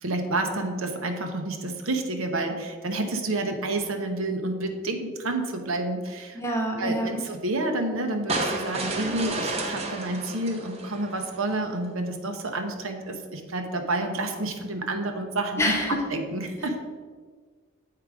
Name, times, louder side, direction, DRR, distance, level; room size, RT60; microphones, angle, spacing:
voice 1, 0.0-6.4 6.8-15.7 16.1-16.8, right 2 dB, 75° right, 5 dB, 0.9 m, -29 dB
voice 2, 6.3-7.1 15.6-16.0, equal, 15° left, 1 dB, 1.0 m, -26 dB
sound 1, 8.3-11.5, right 2 dB, 30° right, 0.8 m, -31 dB
7.6 x 4.7 x 4.8 m, 1.5 s
head